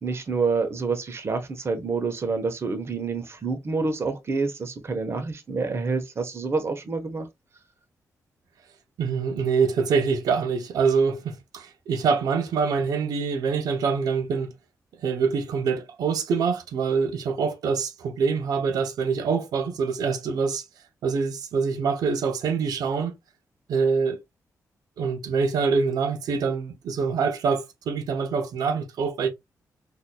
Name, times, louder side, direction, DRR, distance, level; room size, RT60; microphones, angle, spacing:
voice 1, 0.0-7.3, right 4 dB, 45° right, 0.9 m, -28 dB
voice 2, 9.0-14.5 15.0-20.6 21.0-23.1 23.7-24.2 25.0-29.3, right 5 dB, 90° right, 0.7 m, -25 dB
4.1 x 2.7 x 2.3 m
cardioid pair, 95°, 6 cm